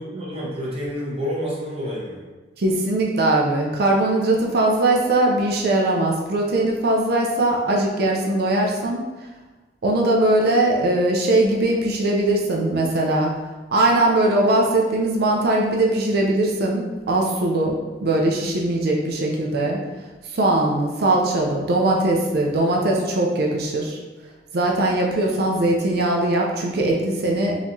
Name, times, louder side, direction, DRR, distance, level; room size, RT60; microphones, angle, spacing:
voice 1, 0.0-2.2 25.2-25.6, equal, 35° right, -7 dB, 1.1 m, -29 dB
voice 2, 2.6-9.0 9.8-13.3 13.7-19.8 20.3-24.0 24.5-27.6, right 2 dB, 60° right, -1 dB, 0.5 m, -20 dB
4.1 x 2.9 x 2.6 m, 1.2 s
head